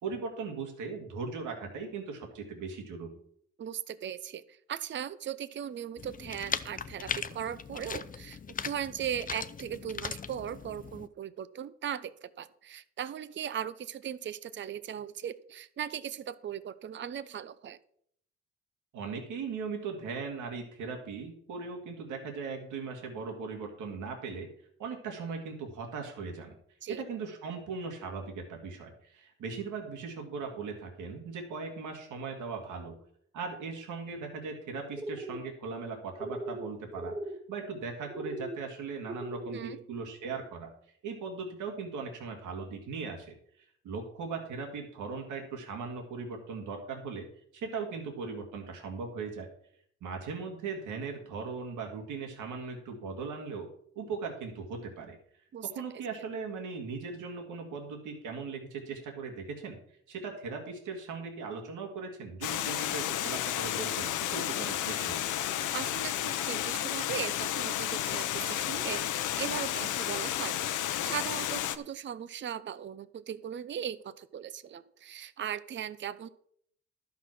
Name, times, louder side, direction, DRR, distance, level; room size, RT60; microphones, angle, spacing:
voice 1, 0.0-3.1 18.9-24.5 24.8-26.5 26.9-33.0 33.3-40.7 41.0-47.3 47.5-49.5 50.0-53.7 54.0-55.2 55.6-59.8 60.1-65.2, right 4 dB, 80° right, 2 dB, 2.2 m, -39 dB
voice 2, 3.6-17.8 26.8-27.0 39.5-39.8 55.5-55.7 55.9-56.0 65.7-76.3, right 9 dB, 40° right, 15 dB, 0.6 m, -38 dB
sound 1, 6.0-11.1, left 6 dB, 30° left, 0.5 m, -39 dB
sound 2, 34.9-35.4 36.2-36.7 36.9-37.4 38.1-38.6 39.1-39.6, right 1 dB, 15° right, 0.9 m, -38 dB
Water, 62.4-71.8, left 12 dB, 80° left, 0.8 m, -32 dB
11.5 x 5.8 x 6.1 m, 0.66 s
cardioid pair, 90°, 30 cm